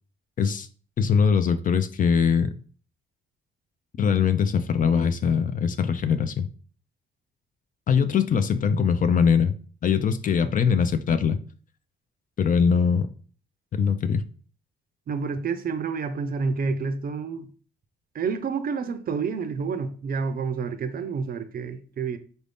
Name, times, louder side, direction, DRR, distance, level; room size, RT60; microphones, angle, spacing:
voice 1, 1.0-2.5 4.0-6.5 7.9-9.5 9.8-11.4 12.4-13.1 13.7-14.2, left 6 dB, 45° left, 0.4 m, -22 dB
voice 2, 15.1-17.5 18.1-22.2, right 5 dB, 45° right, 0.5 m, -29 dB
4.0 x 2.6 x 3.4 m
cardioid pair, 90°, 20 cm